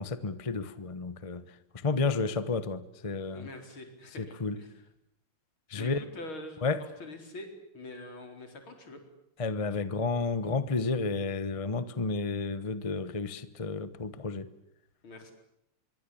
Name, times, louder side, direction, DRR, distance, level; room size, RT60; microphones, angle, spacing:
voice 1, 0.0-3.5 4.2-4.6 5.7-6.0 6.6-6.8 9.4-14.5, left 4 dB, 20° left, 1.0 m, -31 dB
voice 2, 3.3-4.7 5.7-6.7 7.0-7.5 7.7-9.0 15.0-15.3, left 2 dB, 80° left, 5.1 m, -44 dB
25.5 x 23.5 x 8.7 m
omnidirectional pair, 2.2 m